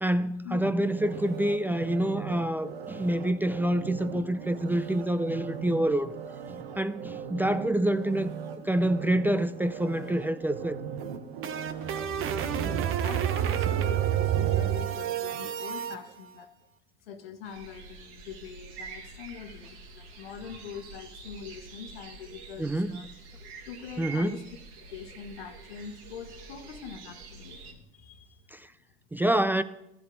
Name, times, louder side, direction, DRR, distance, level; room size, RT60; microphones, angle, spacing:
voice 1, 0.0-6.1 6.5-8.3 8.6-10.8 22.6-23.0 24.0-24.4 28.5-28.7 29.1-29.6, right 1 dB, 5° right, 0.5 m, -27 dB
sound 1, 0.5-15.6 16.0-16.1, right 7 dB, 85° right, 0.9 m, -40 dB
sound 2, 11.0-16.0, right 10 dB, 45° right, 1.1 m, -29 dB
voice 2, 12.4-16.5 17.1-23.1 23.7-24.4 24.9-28.5, left 7 dB, 80° left, 1.3 m, -43 dB
sound 3, 17.4-27.7, right 4 dB, 65° right, 2.5 m, -46 dB
14.0 x 10.5 x 3.9 m
hypercardioid pair, 75°, 29 cm